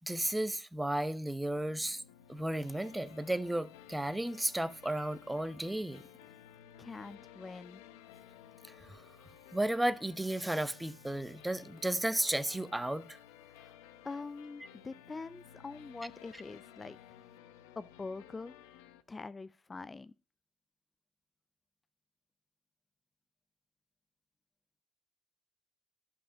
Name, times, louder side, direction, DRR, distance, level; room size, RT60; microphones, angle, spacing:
voice 1, 0.0-2.0 2.3-6.0 8.7-9.0 9.5-13.2, right 1 dB, 10° right, 0.8 m, -34 dB
sound 1, 1.6-19.0, left 10 dB, 85° left, 0.8 m, -56 dB
voice 2, 6.8-7.8 13.5-13.8 14.0-17.0 17.8-18.5 19.1-20.1, left 3 dB, 30° left, 0.4 m, -44 dB
11.0 x 5.6 x 5.0 m
hypercardioid pair, 60°, 0 cm